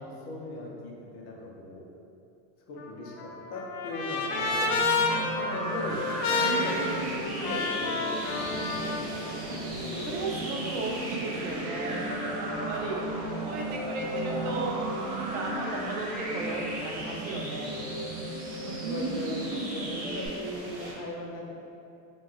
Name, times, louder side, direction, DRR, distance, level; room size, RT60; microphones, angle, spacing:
voice 1, 0.0-1.9 2.7-10.0 11.1-11.3 11.8-12.1 17.5-18.2 18.6-21.5, left 1 dB, 40° left, -2 dB, 0.6 m, -39 dB
Trumpet, 2.8-9.1, left 3 dB, 85° left, 0.6 m, -30 dB
sound 1, 4.3-20.3, right 1 dB, 20° right, 0.4 m, -35 dB
sound 2, 5.9-20.9, right 1 dB, 55° right, 1.0 m, -43 dB
voice 2, 6.4-7.1 9.5-9.6 10.0-12.1 12.4-13.1 13.3-14.8 15.2-17.7 18.8-19.8, right 2 dB, 75° right, 0 dB, 0.7 m, -36 dB
2.6 x 2.2 x 3.8 m, 2.6 s
supercardioid pair, 130°, 42 cm